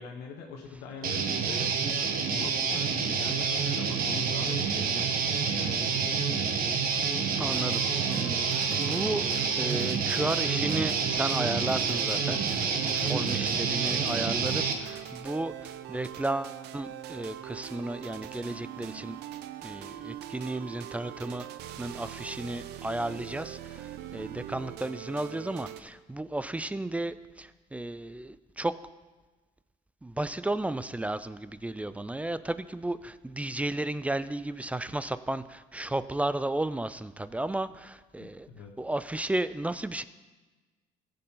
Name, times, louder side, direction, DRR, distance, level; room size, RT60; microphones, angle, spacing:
voice 1, 0.0-6.3 13.0-13.3 38.2-38.8, left 5 dB, 85° left, 0 dB, 1.3 m, -42 dB
Guitar, 1.0-14.7, right 6 dB, 60° right, 1.1 m, -28 dB
voice 2, 7.4-7.8 8.1-19.2 19.6-21.5 21.8-28.7 30.0-38.5 38.8-40.0, right 1 dB, 10° right, 14 dB, 0.3 m, -33 dB
sound 1, 7.5-25.8, right 11 dB, 80° right, 0.6 m, -42 dB
15.5 x 6.7 x 3.8 m, 1.3 s
cardioid pair, 110°, 17 cm